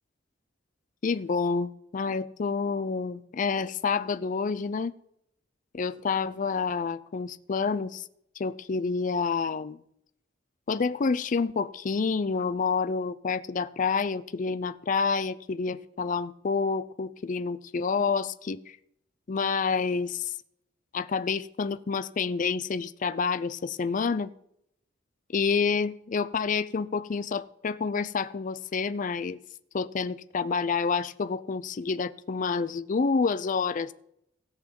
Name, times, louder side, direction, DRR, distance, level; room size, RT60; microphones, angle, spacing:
voice 1, 1.0-4.9 5.7-8.0 8.4-9.8 10.7-18.8 19.3-20.3 20.9-24.3 25.3-29.4 29.7-33.9, left 5 dB, 40° left, 14 dB, 0.4 m, -28 dB
16.5 x 5.8 x 5.3 m, 0.76 s
head